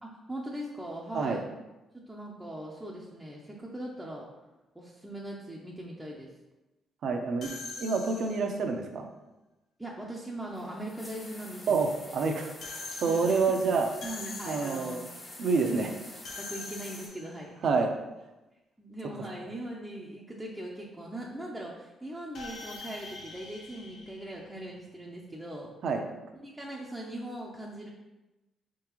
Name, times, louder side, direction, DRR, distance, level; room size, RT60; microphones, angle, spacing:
voice 1, 0.0-1.5 2.0-4.3 4.7-6.3 9.8-11.8 13.1-13.6 14.0-15.0 15.6-15.9 16.4-17.6 18.8-25.7 26.4-27.9, right 1 dB, 10° right, -4 dB, 0.6 m, -40 dB
voice 2, 7.0-7.5 7.8-9.1 11.7-13.9 14.5-15.0 15.4-15.9 17.6-17.9 25.8-26.1, right 4 dB, 65° right, 4 dB, 0.6 m, -28 dB
sound 1, 7.4-8.7 12.6-15.1 16.2-17.5 22.3-24.9, left 3 dB, 70° left, 0.8 m, -44 dB
sound 2, 10.4-17.1, left 1 dB, 20° left, 1.2 m, -47 dB
4.6 x 3.7 x 3.0 m, 1.0 s
cardioid pair, 90°, 0 cm